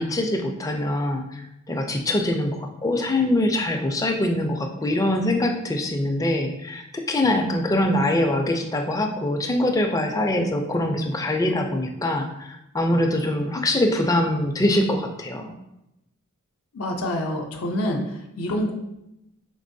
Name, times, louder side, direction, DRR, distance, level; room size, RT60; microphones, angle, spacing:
voice 1, 0.0-15.5, left 1 dB, 15° left, 4 dB, 0.4 m, -23 dB
voice 2, 16.7-18.7, left 1 dB, 75° left, 1 dB, 0.6 m, -27 dB
5.2 x 3.7 x 2.6 m, 0.88 s
head